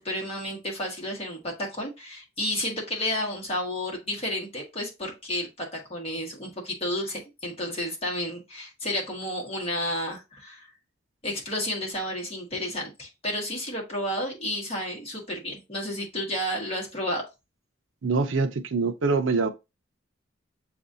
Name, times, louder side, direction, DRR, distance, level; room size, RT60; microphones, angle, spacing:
voice 1, 0.0-10.7 11.2-17.2, left 1 dB, 30° left, 1.4 m, -31 dB
voice 2, 18.0-19.5, right 4 dB, 75° right, 0.5 m, -24 dB
6.9 x 2.6 x 2.7 m
head